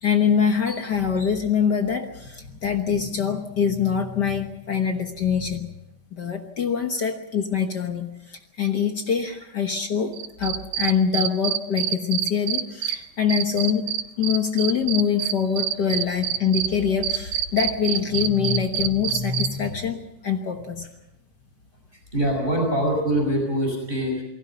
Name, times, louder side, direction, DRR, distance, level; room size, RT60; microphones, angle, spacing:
voice 1, 0.0-5.7 6.1-13.8 14.2-20.8, left 7 dB, 60° left, 5 dB, 1.0 m, -24 dB
Cricket, 10.1-12.9 13.3-16.7 17.0-19.5, right 11 dB, 80° right, 2.6 m, -25 dB
voice 2, 21.9-24.2, right 1 dB, 15° right, 1 dB, 5.2 m, -24 dB
28.5 x 19.5 x 5.5 m, 0.87 s
omnidirectional pair, 3.8 m